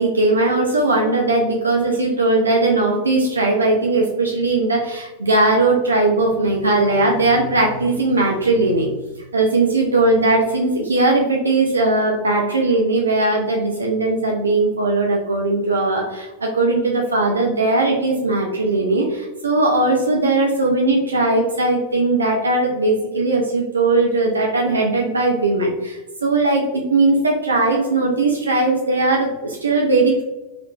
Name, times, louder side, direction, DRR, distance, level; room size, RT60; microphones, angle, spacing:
voice 1, 0.0-8.9 9.3-30.2, right 2 dB, 75° right, 0 dB, 0.4 m, -19 dB
3.3 x 3.1 x 2.3 m, 1.1 s
figure-of-eight pair, 90°, 0 cm